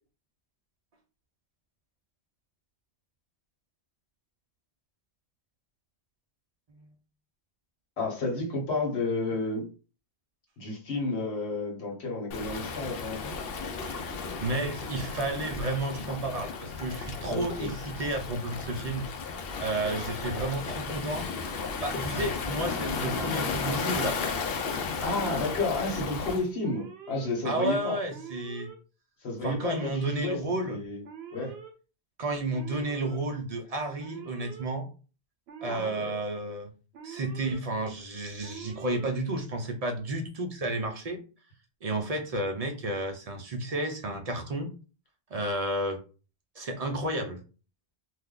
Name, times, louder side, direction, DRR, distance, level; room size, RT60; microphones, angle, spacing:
voice 1, 8.0-9.7 10.6-13.4 17.2-17.7 25.0-28.0 29.2-30.4 30.6-31.0 31.3-31.6 35.6-36.1, left 3 dB, 85° left, 1.3 m, -31 dB
Waves surf, 12.3-26.5, left 5 dB, 70° left, 0.8 m, -34 dB
voice 2, 14.4-19.1 19.6-21.3 21.8-24.2 27.4-28.7 29.4-30.8 32.2-34.9 35.6-36.7 37.0-41.2 41.8-44.7 45.3-46.0 46.6-47.4, right 2 dB, 50° right, 0.5 m, -32 dB
Alarm, 25.2-25.8 26.6-27.3 28.1-28.8 29.6-30.2 31.0-31.7 32.5-33.2 34.0-34.7 35.5-36.1 36.9-37.6 38.4-39.1, right 7 dB, 80° right, 0.9 m, -45 dB
2.6 x 2.2 x 3.6 m
omnidirectional pair, 1.1 m